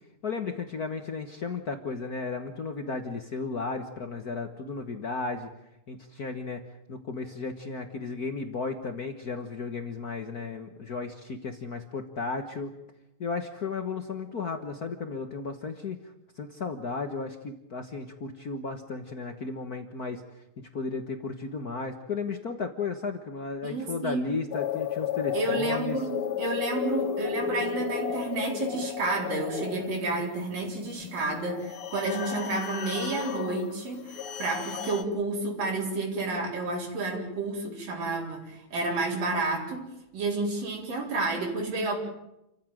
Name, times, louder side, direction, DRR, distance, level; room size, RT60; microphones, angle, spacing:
voice 1, 0.2-5.5 5.9-6.6 6.9-12.7 13.2-16.0 16.4-20.2 20.6-26.0, left 4 dB, 90° left, 6 dB, 0.8 m, -34 dB
voice 2, 23.6-24.3 25.3-42.0, right 2 dB, 80° right, -2 dB, 6.1 m, -30 dB
sound 1, 24.5-35.0, left 8 dB, 55° left, 1.7 m, -33 dB
29.0 x 15.0 x 9.2 m, 0.89 s
omnidirectional pair, 3.9 m